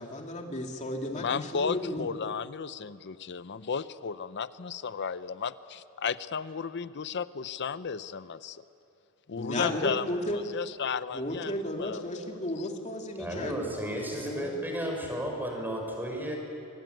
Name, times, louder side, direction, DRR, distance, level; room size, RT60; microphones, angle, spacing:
voice 1, 0.0-2.1 9.4-10.4 11.1-13.6 14.2-14.5, left 1 dB, 35° left, 2 dB, 2.6 m, -34 dB
voice 2, 1.1-8.6 9.3-12.0 12.3-12.4, left 6 dB, 55° left, 14 dB, 0.6 m, -34 dB
voice 3, 13.2-16.4, equal, 10° right, 1 dB, 5.2 m, -33 dB
24.5 x 24.0 x 9.2 m, 2.7 s
head